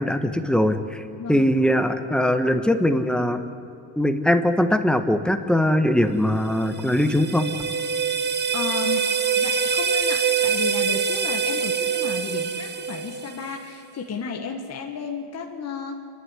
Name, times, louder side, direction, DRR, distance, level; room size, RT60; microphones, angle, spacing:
voice 1, 0.0-1.0 1.3-3.4 4.0-7.5, left 1 dB, ahead, 7 dB, 1.1 m, -21 dB
sound 1, 6.5-13.6, right 6 dB, 25° right, 0.7 m, -25 dB
voice 2, 8.2-9.0 9.3-16.0, left 5 dB, 35° left, 2 dB, 1.6 m, -33 dB
28.5 x 11.5 x 9.7 m, 2.5 s
cardioid pair, 140°, 44 cm